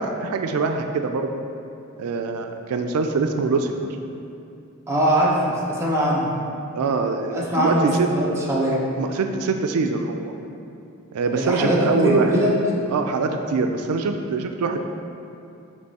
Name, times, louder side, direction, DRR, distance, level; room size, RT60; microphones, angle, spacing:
voice 1, 0.0-1.4 2.0-3.7 6.7-8.1 9.0-10.3 11.1-12.5 12.9-14.8, right 4 dB, 85° right, 5 dB, 0.4 m, -24 dB
voice 2, 4.9-6.3 7.3-8.8 11.3-12.5, right 1 dB, 10° right, -5 dB, 0.9 m, -21 dB
7.9 x 3.1 x 4.1 m, 2.7 s
head